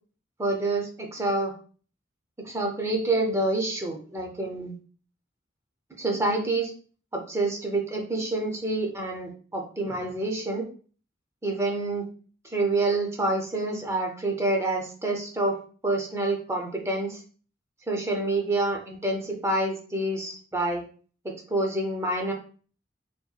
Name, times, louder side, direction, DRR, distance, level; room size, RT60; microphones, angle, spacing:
voice 1, 0.4-1.5 2.4-4.7 6.0-6.7 7.1-10.7 11.4-12.1 12.5-17.2 17.9-20.8 21.2-22.3, right 2 dB, 15° right, 1 dB, 0.4 m, -27 dB
2.7 x 2.2 x 2.3 m, 0.42 s
head